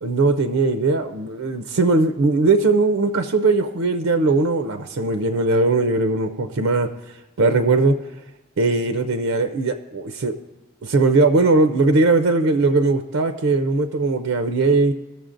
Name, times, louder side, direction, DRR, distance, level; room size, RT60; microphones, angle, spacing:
voice 1, 0.0-6.9 7.4-8.0 8.6-10.3 10.8-14.9, right 3 dB, 85° right, 8 dB, 0.5 m, -19 dB
20.0 x 6.8 x 2.5 m, 1.0 s
head